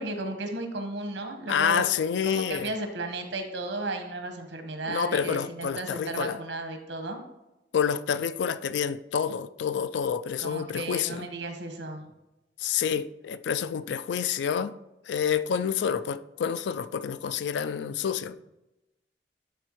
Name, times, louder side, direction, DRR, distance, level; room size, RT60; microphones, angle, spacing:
voice 1, 0.0-1.9 2.2-7.2 10.4-12.1, right 2 dB, 80° right, 1.1 m, -34 dB
voice 2, 1.5-2.7 4.9-6.4 7.7-11.3 12.6-14.7 15.0-18.4, left 7 dB, 70° left, 0.3 m, -28 dB
11.5 x 4.2 x 3.0 m
head